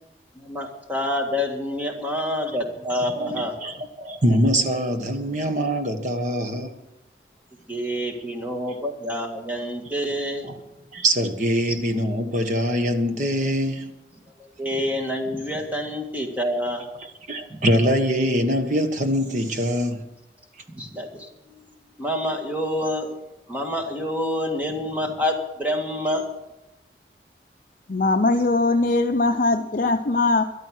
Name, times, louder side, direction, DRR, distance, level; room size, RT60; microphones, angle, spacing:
voice 1, 0.4-3.6 7.7-10.5 11.7-11.8 14.4-16.9 17.5-17.6 20.7-21.5 22.0-23.1 23.5-26.2, left 1 dB, 10° right, 2 dB, 1.9 m, -27 dB
voice 2, 3.0-6.7 8.0-8.1 10.4-10.5 10.9-13.9 17.3-20.0, equal, 45° right, 7 dB, 1.4 m, -23 dB
voice 3, 27.9-30.4, left 3 dB, 50° left, 5 dB, 0.6 m, -20 dB
13.5 x 12.0 x 6.3 m, 0.94 s
head